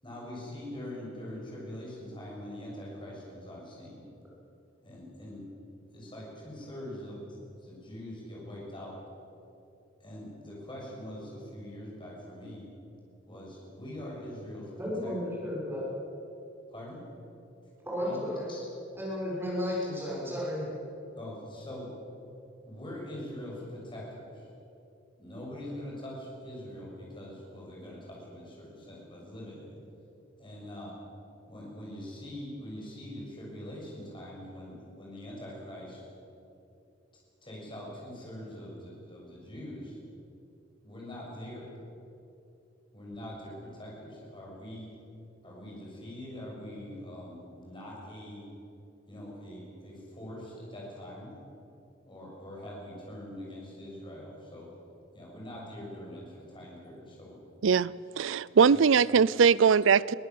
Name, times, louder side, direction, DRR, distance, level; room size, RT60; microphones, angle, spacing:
voice 1, 0.0-4.1 4.8-5.4 5.9-9.0 10.0-12.7 13.3-14.7 15.0-15.1 16.7-17.0 18.0-18.2 18.5-18.6 19.8-20.1 21.1-21.9 22.6-24.5 25.2-29.7 30.4-30.9 31.5-36.0 37.4-40.0 40.8-41.7 42.9-44.9 45.4-48.4 49.1-51.3 52.1-54.7 55.1-57.4 58.7-58.8 59.6-59.7, left 1 dB, 25° left, -4 dB, 6.8 m, -43 dB
voice 2, 14.8-15.8 17.8-18.5 18.9-20.6, left 1 dB, 10° right, -5 dB, 6.6 m, -33 dB
voice 3, 58.2-60.1, right 6 dB, 70° right, 21 dB, 0.5 m, -21 dB
22.5 x 18.0 x 7.8 m, 2.8 s
head